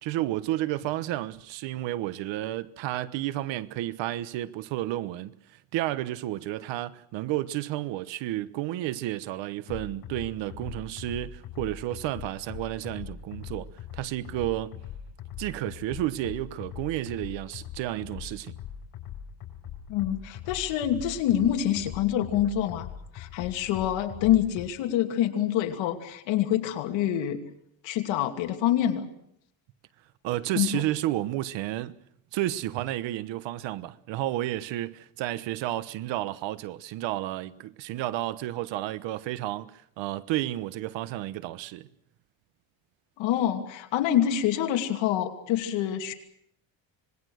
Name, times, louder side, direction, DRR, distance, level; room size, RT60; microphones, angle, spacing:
voice 1, 0.0-14.8 15.4-18.5 30.2-32.0 32.3-41.9, right 15 dB, 75° right, 1.2 m, -31 dB
sound 1, 9.7-24.7, left 9 dB, 60° left, 5.0 m, -41 dB
voice 2, 19.9-22.9 23.1-27.4 27.8-29.1 30.6-30.8 43.2-46.1, left 11 dB, 80° left, 2.8 m, -26 dB
26.0 x 21.0 x 6.5 m
cardioid pair, 145°, 45 cm